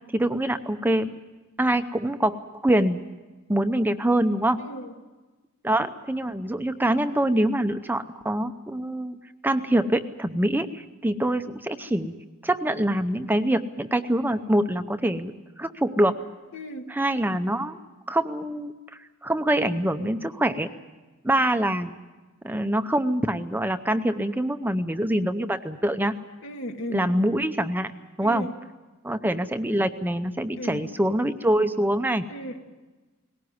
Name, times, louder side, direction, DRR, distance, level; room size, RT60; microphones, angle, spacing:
voice 1, 0.1-1.1 1.6-2.4 2.6-3.0 3.5-4.6 5.6-9.2 9.4-12.1 12.4-15.3 15.6-16.2 16.9-17.8 18.1-18.7 19.2-20.7 21.2-21.9 22.4-26.1 26.9-27.9 28.2-28.5 29.0-32.3, right 1 dB, 10° right, 9 dB, 0.7 m, -24 dB
voice 2, 4.6-4.9 16.5-17.0 26.4-27.2 28.2-28.6 30.6-30.9 32.3-32.6, equal, 70° left, 5 dB, 1.8 m, -35 dB
19.5 x 17.5 x 9.5 m, 1.2 s
head